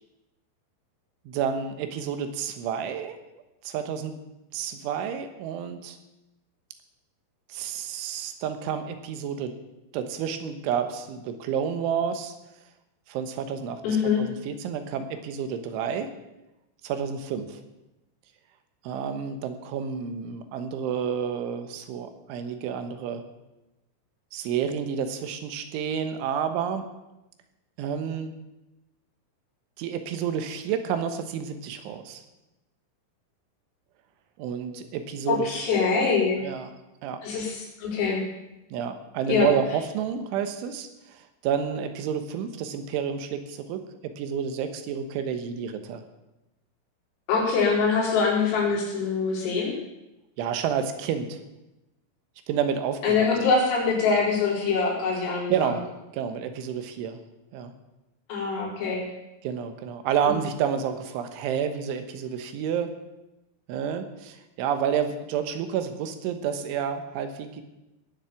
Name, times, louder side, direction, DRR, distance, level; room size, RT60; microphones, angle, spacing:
voice 1, 1.3-3.2 3.7-4.1 4.5-6.0 7.5-9.5 9.9-12.3 13.1-16.1 16.8-17.6 18.9-23.2 24.3-26.9 27.8-28.3 29.8-32.2 34.4-35.5 36.4-36.7 37.0-37.2 38.7-46.0 50.4-51.4 52.5-53.3 55.5-55.8 56.1-57.2 57.5-57.7 59.4-63.0 63.7-67.6, right 8 dB, 75° right, 8 dB, 3.5 m, -30 dB
voice 2, 13.8-14.2 35.3-36.4 37.2-38.2 39.3-39.5 47.3-49.8 53.0-55.7 58.3-59.1 60.3-60.4, left 5 dB, 85° left, -4 dB, 7.0 m, -24 dB
19.5 x 7.4 x 7.3 m, 0.96 s
omnidirectional pair, 5.8 m